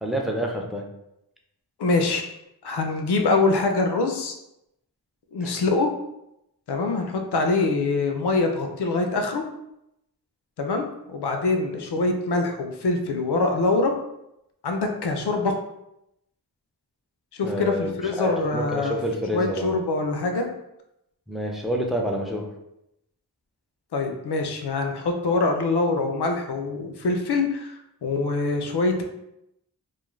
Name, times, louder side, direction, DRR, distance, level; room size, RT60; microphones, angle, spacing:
voice 1, 0.0-0.8 5.4-5.5 17.4-19.8 21.3-22.5, equal, ahead, 0 dB, 0.4 m, -28 dB
voice 2, 1.8-2.2 2.6-4.4 5.3-5.9 6.7-9.4 10.6-13.9 14.6-15.5 17.3-19.0 19.3-20.5 23.9-29.0, left 3 dB, 80° left, 4 dB, 0.5 m, -24 dB
2.4 x 2.1 x 3.1 m, 0.84 s
wide cardioid pair, 50°, 39 cm